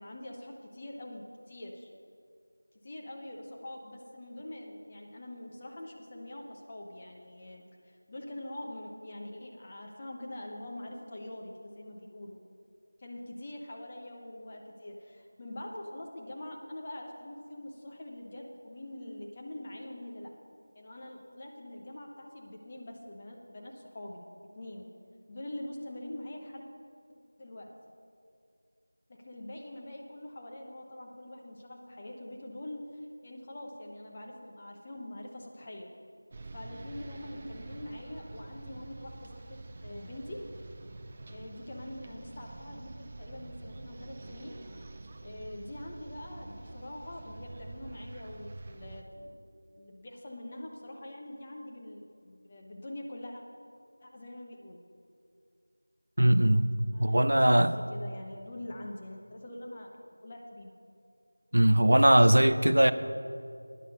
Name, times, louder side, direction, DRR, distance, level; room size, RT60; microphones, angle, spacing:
voice 1, 0.0-1.9 2.8-12.4 13.0-20.3 20.7-24.3 24.5-24.9 25.3-26.7 27.1-27.7 29.1-32.8 33.2-35.9 36.5-40.4 41.3-44.6 45.2-49.4 49.7-53.4 54.0-54.8 56.9-57.5 57.9-60.7, left 1 dB, 20° left, 0.8 m, -44 dB
sound 1, 36.3-49.0, right 2 dB, 20° right, 0.4 m, -46 dB
voice 2, 56.2-56.7 57.0-57.7 61.5-62.9, right 1 dB, 75° right, 0.6 m, -21 dB
12.0 x 9.7 x 5.3 m
figure-of-eight pair, 175°, 0 cm